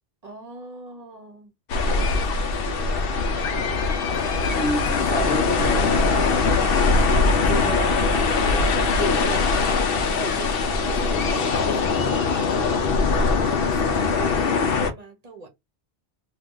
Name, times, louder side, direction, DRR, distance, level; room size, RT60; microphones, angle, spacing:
voice 1, 0.2-1.5 1.8-3.1 10.2-10.4 13.0-15.5, right 2 dB, 40° right, 0.8 m, -43 dB
sound 1, 1.7-14.9, left 4 dB, 65° left, 0.7 m, -22 dB
voice 2, 3.5-3.8 4.5-6.7 7.2-9.5 10.1-10.5 10.8-12.1, equal, 10° left, 0.7 m, -31 dB
2.7 x 2.2 x 3.7 m
omnidirectional pair, 1.1 m